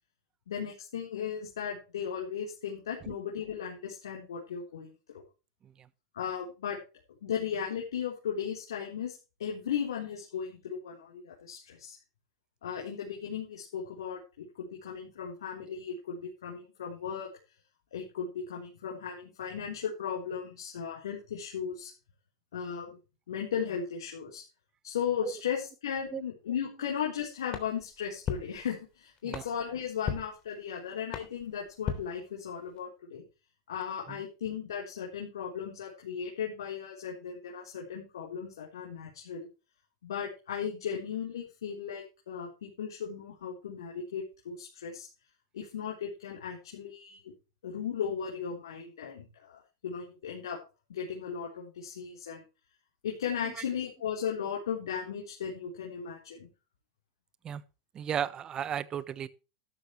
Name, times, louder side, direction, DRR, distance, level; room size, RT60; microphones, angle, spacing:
voice 1, 0.5-5.2 6.1-6.8 7.2-12.0 12.6-17.3 17.9-21.9 22.5-23.0 23.3-24.4 24.8-33.2 33.7-39.5 40.0-45.1 45.5-47.3 47.6-50.6 50.9-52.4 53.0-56.5, left 7 dB, 85° left, 4.1 m, -36 dB
sound 1, 27.5-32.8, left 8 dB, 35° left, 3.4 m, -40 dB
voice 2, 57.9-59.3, right 9 dB, 30° right, 1.0 m, -35 dB
13.0 x 12.5 x 3.2 m
hypercardioid pair, 110°, 2 cm